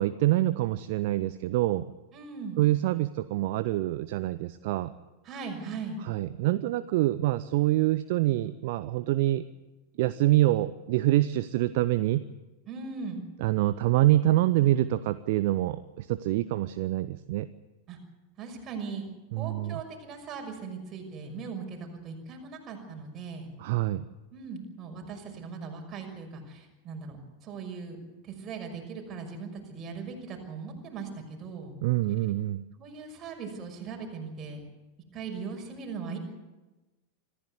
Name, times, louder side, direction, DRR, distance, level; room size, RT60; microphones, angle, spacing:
voice 1, 0.0-1.9 2.6-4.9 6.1-9.5 10.0-12.3 13.4-17.5 19.3-19.8 23.6-24.1 31.8-32.6, right 15 dB, 50° right, 14 dB, 0.6 m, -26 dB
voice 2, 2.1-2.6 5.2-6.0 12.7-13.3 17.9-18.0 18.4-19.1 19.3-23.5 24.3-28.0 28.2-31.8 32.8-34.6 35.1-36.2, right 5 dB, 30° right, 2 dB, 6.1 m, -39 dB
25.5 x 15.0 x 8.2 m, 1.1 s
figure-of-eight pair, 90°, 0 cm